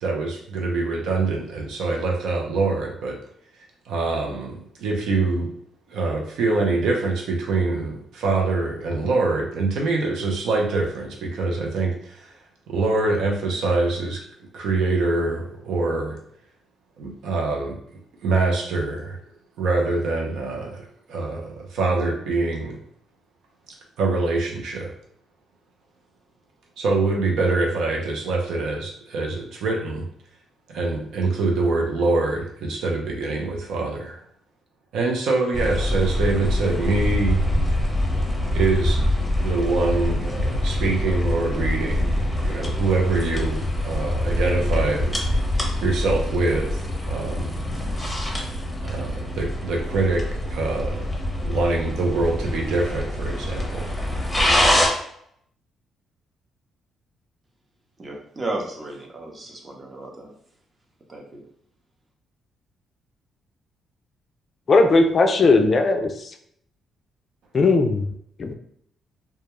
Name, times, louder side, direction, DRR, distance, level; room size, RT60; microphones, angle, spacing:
voice 1, 0.0-3.2 3.9-4.5 4.8-5.5 5.9-12.3 12.7-14.2 14.5-16.2 17.0-17.8 18.2-19.2 19.6-22.8 24.0-24.9 26.8-30.1 30.7-34.2 34.9-37.4 38.5-45.2 45.8-47.5 48.8-53.9, right 3 dB, 80° right, 0 dB, 0.5 m, -24 dB
sound 1, 35.5-54.9, left 1 dB, 5° left, 0.7 m, -25 dB
voice 2, 58.0-60.3 61.1-61.4, right 2 dB, 30° right, 0 dB, 0.7 m, -34 dB
voice 3, 64.7-66.1 67.5-68.1 68.4-68.5, left 3 dB, 40° left, 5 dB, 0.3 m, -17 dB
2.3 x 2.1 x 2.9 m, 0.69 s
cardioid pair, 90°, 0 cm